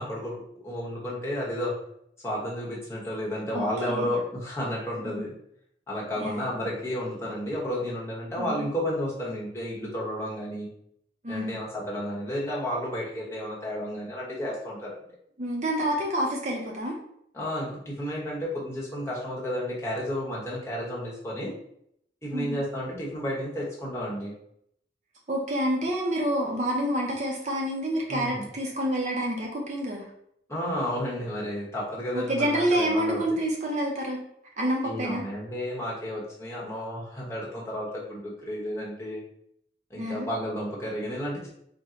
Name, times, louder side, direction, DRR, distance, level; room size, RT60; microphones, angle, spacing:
voice 1, 0.0-1.7 2.2-5.3 5.9-10.7 11.3-14.9 17.3-21.5 22.2-24.3 28.1-28.5 30.5-33.4 34.8-39.2 39.9-41.5, equal, 15° left, -5 dB, 0.9 m, -32 dB
voice 2, 3.5-4.1 5.0-5.3 6.2-6.5 8.4-8.6 11.2-11.6 15.4-16.9 22.3-22.6 25.3-30.0 32.1-34.2 34.6-35.2 40.0-40.3, equal, 40° right, -1 dB, 0.6 m, -28 dB
4.2 x 2.1 x 3.7 m, 0.72 s
head